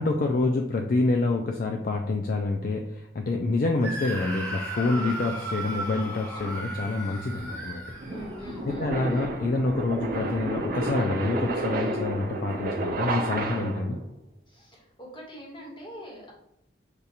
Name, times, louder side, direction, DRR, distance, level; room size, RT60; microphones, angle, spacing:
voice 1, 0.0-7.8 8.6-14.0, left 2 dB, 50° left, 3 dB, 0.3 m, -27 dB
Screaming, 3.8-8.7, right 1 dB, 5° left, 1.1 m, -36 dB
voice 2, 4.8-5.2 8.1-9.3 11.8-12.1 13.5-13.7 14.5-16.3, left 1 dB, 25° left, -3 dB, 1.2 m, -42 dB
sound 1, 6.4-14.0, right 2 dB, 50° right, 0.5 m, -31 dB
6.6 x 2.4 x 2.8 m, 0.78 s
head